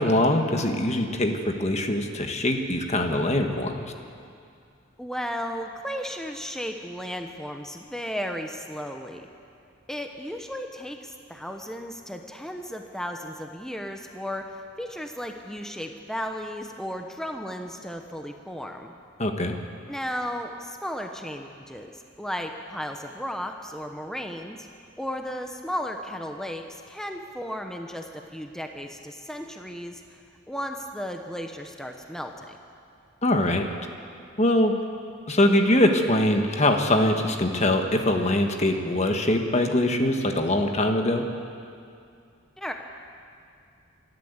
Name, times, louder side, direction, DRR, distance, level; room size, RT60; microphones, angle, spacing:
voice 1, 0.0-3.8 19.2-19.6 33.2-33.7 34.4-34.7 35.3-41.2, left 1 dB, 35° left, 4 dB, 1.4 m, -23 dB
voice 2, 5.0-9.3 9.9-18.9 19.9-24.7 25.0-32.6 42.6-42.7, equal, 5° left, 4 dB, 0.9 m, -35 dB
27.0 x 12.0 x 8.1 m, 2.4 s
head